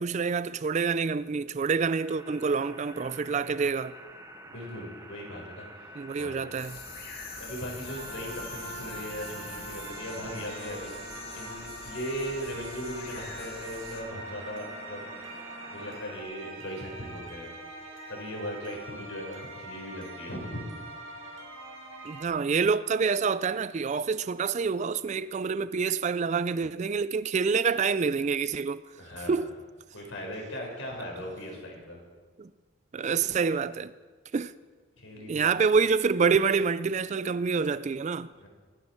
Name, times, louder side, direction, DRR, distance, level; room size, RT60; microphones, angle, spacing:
voice 1, 0.0-3.9 6.0-6.8 22.0-28.8 29.3-29.5 32.4-32.5 32.9-33.9 34.3-34.5 35.3-38.3, right 5 dB, 35° right, 0.3 m, -27 dB
sound 1, 1.8-16.2, right 1 dB, 15° right, 0.8 m, -48 dB
voice 2, 4.5-5.9 6.2-6.4 7.4-10.9 11.3-15.3 15.7-17.6 17.8-20.6 21.2-21.3 29.0-29.4 29.9-32.0 35.0-35.5 38.4-38.5, equal, 70° left, 4.4 m, -38 dB
sound 2, 6.6-14.0, left 5 dB, 50° left, 2.2 m, -45 dB
sound 3, 7.9-22.2, right 2 dB, 70° right, 2.1 m, -43 dB
24.5 x 9.6 x 4.5 m
head